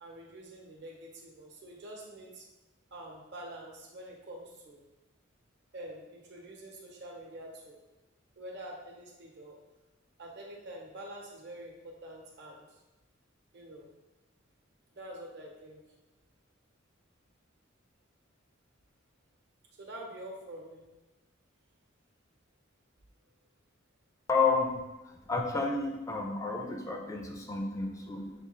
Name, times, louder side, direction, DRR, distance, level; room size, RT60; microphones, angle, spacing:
voice 1, 0.0-2.4 2.9-4.8 5.7-7.8 8.4-9.5 10.2-12.6 13.5-13.9 14.9-15.8 19.8-20.8, right 1 dB, 60° right, -1 dB, 0.9 m, -46 dB
voice 2, 24.3-28.3, left 4 dB, 15° left, 2 dB, 0.4 m, -31 dB
6.5 x 2.3 x 3.1 m, 1.1 s
head